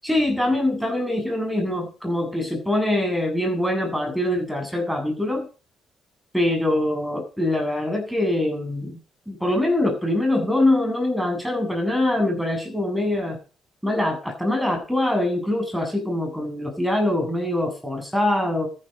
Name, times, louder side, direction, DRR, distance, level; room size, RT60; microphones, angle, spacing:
voice 1, 0.0-5.5 6.3-9.0 9.3-13.4 13.8-18.7, left 1 dB, ahead, 3 dB, 7.7 m, -23 dB
14.0 x 10.5 x 5.3 m, 0.37 s
cardioid pair, 75°, 0 cm